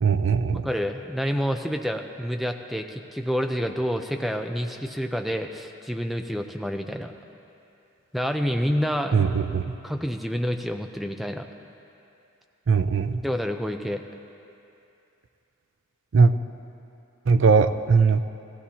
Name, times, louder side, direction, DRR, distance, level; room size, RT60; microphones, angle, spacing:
voice 1, 0.0-0.7 9.1-9.7 12.7-13.2 16.1-16.3 17.3-18.2, right 5 dB, 70° right, 10 dB, 0.4 m, -19 dB
voice 2, 0.5-7.1 8.1-9.3 9.8-11.5 13.2-14.0, equal, ahead, 4 dB, 0.5 m, -28 dB
17.0 x 15.0 x 2.9 m, 2.7 s
head